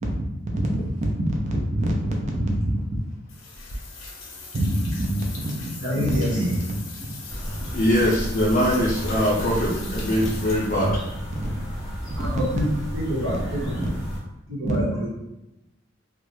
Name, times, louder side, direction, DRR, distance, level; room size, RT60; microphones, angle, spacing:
voice 1, 0.0-3.0 4.5-6.3 6.7-7.8 10.2-10.4 10.8-10.9 11.4-11.7 13.3-13.4 13.8-13.9 14.6-14.8, right 1 dB, 35° right, 0 dB, 0.4 m, -27 dB
sound 1, 3.3-11.1, left 3 dB, 85° left, 0.6 m, -40 dB
voice 2, 5.8-6.6 12.2-12.7 12.9-13.9 14.5-15.1, equal, 75° right, -6 dB, 1.1 m, -26 dB
sound 2, 7.3-14.2, equal, ahead, 0.8 m, -32 dB
voice 3, 7.7-10.9, equal, 40° left, -7 dB, 0.5 m, -22 dB
2.3 x 2.0 x 3.0 m, 0.91 s
head